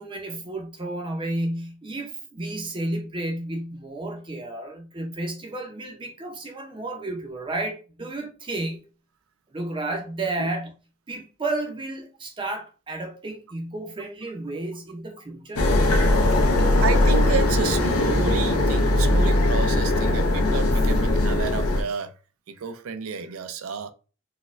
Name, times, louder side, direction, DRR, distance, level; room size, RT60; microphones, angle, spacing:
voice 1, 0.0-8.8 9.5-10.7 11.1-15.7 16.6-16.7, right 2 dB, 25° right, 0.5 m, -32 dB
sound 1, 15.6-21.8, left 1 dB, 90° left, 0.7 m, -20 dB
voice 2, 16.8-22.1 22.5-23.9, right 5 dB, 75° right, 0.4 m, -31 dB
4.0 x 2.2 x 2.5 m
head